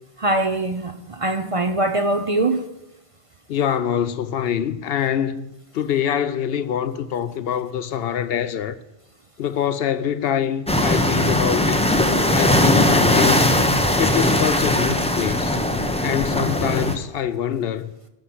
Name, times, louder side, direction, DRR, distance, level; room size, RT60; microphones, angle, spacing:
voice 1, 0.2-2.7, right 2 dB, 40° right, 0.6 m, -22 dB
voice 2, 3.5-8.7 9.4-11.8 12.3-13.5 14.0-15.6 16.0-17.9, left 9 dB, 70° left, 0.8 m, -24 dB
sound 1, 10.7-17.0, left 1 dB, 5° left, 0.7 m, -19 dB
12.0 x 5.7 x 7.7 m
omnidirectional pair, 1.1 m